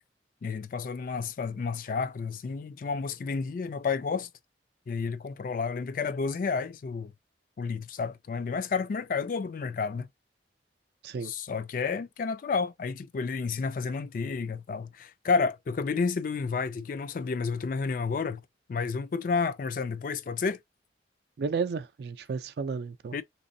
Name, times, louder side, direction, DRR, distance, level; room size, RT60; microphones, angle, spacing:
voice 1, 0.4-4.3 4.9-7.1 7.6-10.1 11.2-18.4 18.7-20.6 23.1-23.2, left 5 dB, 45° left, 0.3 m, -31 dB
voice 2, 21.4-23.2, right 5 dB, 60° right, 0.4 m, -32 dB
3.4 x 3.0 x 2.6 m
head